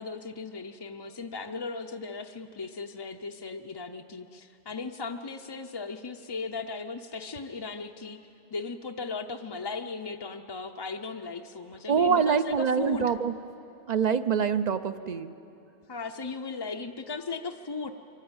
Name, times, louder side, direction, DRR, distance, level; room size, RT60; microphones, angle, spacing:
voice 1, 0.0-8.2 8.5-13.1 15.9-17.9, left 4 dB, 35° left, 4 dB, 0.5 m, -37 dB
voice 2, 11.9-13.3 13.9-15.3, right 6 dB, 50° right, 12 dB, 0.6 m, -25 dB
23.5 x 15.0 x 8.7 m, 2.8 s
omnidirectional pair, 1.0 m